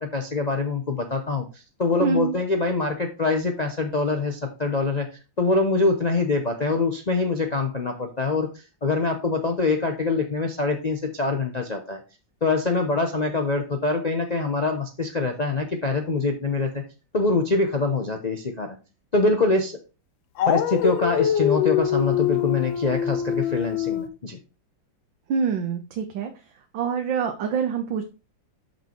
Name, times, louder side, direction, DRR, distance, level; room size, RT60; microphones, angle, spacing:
voice 1, 0.0-5.1 5.4-12.0 12.4-16.8 17.1-18.8 19.1-19.8 20.5-24.4, left 3 dB, 65° left, 3 dB, 0.4 m, -24 dB
voice 2, 2.0-2.3 25.3-26.3 26.7-28.0, right 6 dB, 85° right, 4 dB, 1.6 m, -25 dB
Dog, 20.4-24.1, left 9 dB, 85° left, 1.4 m, -24 dB
6.0 x 5.6 x 4.4 m, 0.31 s
omnidirectional pair, 2.0 m